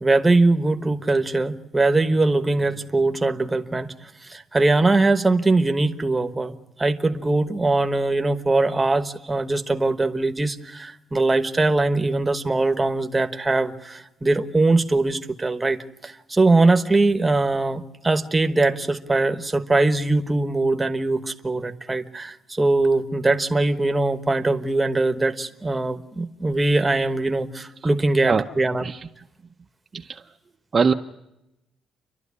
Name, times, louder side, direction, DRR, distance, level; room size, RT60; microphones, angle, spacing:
voice 1, 0.0-15.8 16.0-28.8, right 2 dB, 15° right, 9 dB, 1.2 m, -21 dB
voice 2, 28.3-28.4 28.8-29.0 29.9-30.2 30.7-30.9, right 5 dB, 35° right, 4 dB, 0.7 m, -21 dB
29.5 x 12.0 x 9.6 m, 0.91 s
cardioid pair, 125°, 0 cm